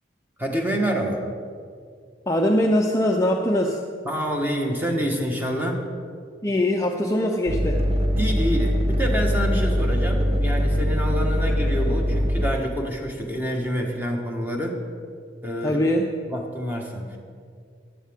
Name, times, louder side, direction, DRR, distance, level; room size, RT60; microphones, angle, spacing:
voice 1, 0.4-1.2 4.0-5.8 8.2-14.8 15.4-15.8 16.3-17.2, equal, 10° right, 0 dB, 1.4 m, -27 dB
voice 2, 2.3-3.8 6.4-7.8 15.6-16.1, left 1 dB, 15° left, 1 dB, 0.6 m, -22 dB
sound 1, 7.5-12.5, equal, 30° right, 0.7 m, -22 dB
15.0 x 11.5 x 3.6 m, 2.2 s
head